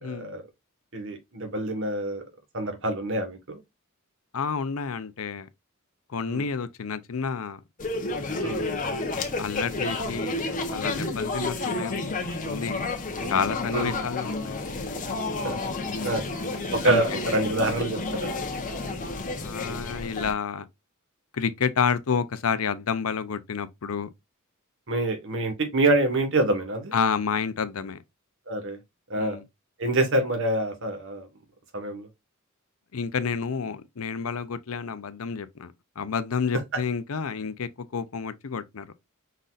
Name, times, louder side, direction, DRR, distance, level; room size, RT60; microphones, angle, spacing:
voice 1, 0.0-0.4 0.9-2.2 2.5-3.6 6.2-6.4 8.4-8.7 13.2-13.3 13.7-13.9 15.4-15.6 16.0-16.2 16.7-18.3 24.9-26.9 28.5-28.8 29.1-29.4 29.8-31.3 31.7-32.1, right 2 dB, 65° right, 1.5 m, -26 dB
voice 2, 4.3-5.5 6.1-7.6 9.4-10.4 10.7-12.9 13.3-14.6 15.9-16.2 16.8-17.2 19.4-20.6 21.3-24.1 26.9-28.0 29.2-29.4 32.9-38.9, left 6 dB, 75° left, 0.6 m, -29 dB
sound 1, 7.8-20.3, left 2 dB, 40° left, 1.0 m, -31 dB
5.3 x 4.0 x 2.5 m
head